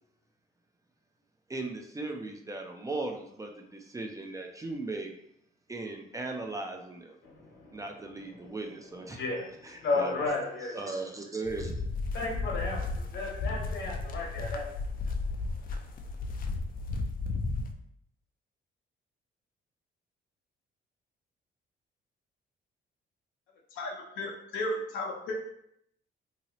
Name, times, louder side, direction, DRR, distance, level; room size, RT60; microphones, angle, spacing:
voice 1, 1.5-5.1 5.7-7.2 7.7-9.2 10.0-10.1 10.7-11.7, right 2 dB, 15° right, 2 dB, 0.4 m, -37 dB
voice 2, 7.2-11.0 12.1-14.7, left 3 dB, 70° left, -1 dB, 1.0 m, -34 dB
sound 1, 11.4-17.7, left 3 dB, 45° left, 0.4 m, -34 dB
voice 3, 23.7-25.3, left 1 dB, 90° left, -2 dB, 0.7 m, -34 dB
2.9 x 2.8 x 2.9 m, 0.74 s
cardioid pair, 90°, 20 cm